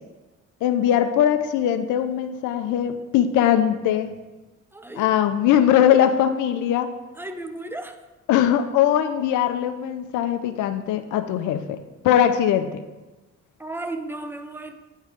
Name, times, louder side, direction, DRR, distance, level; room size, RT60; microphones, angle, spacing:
voice 1, 0.6-4.1 5.0-6.9 8.3-11.8 12.0-12.8, left 10 dB, 85° left, 8 dB, 0.5 m, -21 dB
voice 2, 4.7-5.1 7.2-8.0 13.6-14.7, right 2 dB, 5° right, 7 dB, 0.5 m, -34 dB
8.8 x 3.2 x 4.9 m, 1.2 s
cardioid pair, 90°, 30 cm